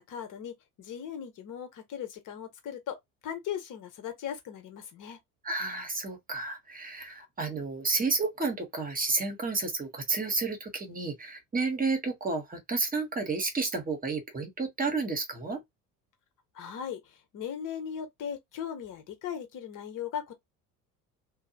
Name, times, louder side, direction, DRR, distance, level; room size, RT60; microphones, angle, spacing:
voice 1, 0.0-3.0 3.2-5.2 16.5-20.3, left 8 dB, 45° left, 1.1 m, -38 dB
voice 2, 5.4-15.6, right 3 dB, 20° right, 1.0 m, -31 dB
2.6 x 2.0 x 2.7 m
figure-of-eight pair, 65°, 45 cm